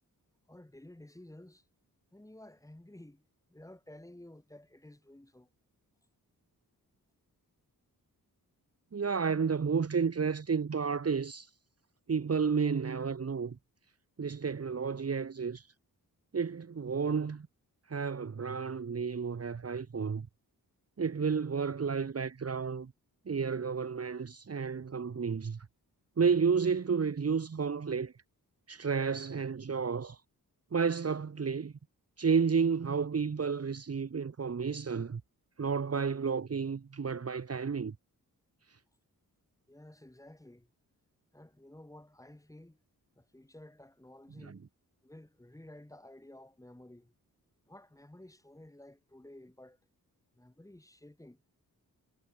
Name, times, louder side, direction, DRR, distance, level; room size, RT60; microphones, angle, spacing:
voice 1, 0.5-1.6 2.1-5.5 39.7-40.7 41.3-42.8 43.1-44.6 45.0-47.1 47.7-49.8 50.3-51.4, left 1 dB, 10° left, 4.8 m, -53 dB
voice 2, 8.9-11.5 12.1-13.6 14.2-15.7 16.3-17.5 17.9-20.3 21.0-22.9 23.3-25.6 26.2-28.1 28.7-30.2 30.7-31.7 32.2-35.2 35.6-37.9 44.4-44.6, right 5 dB, 40° right, 1.7 m, -31 dB
wide cardioid pair, 170°, 36 cm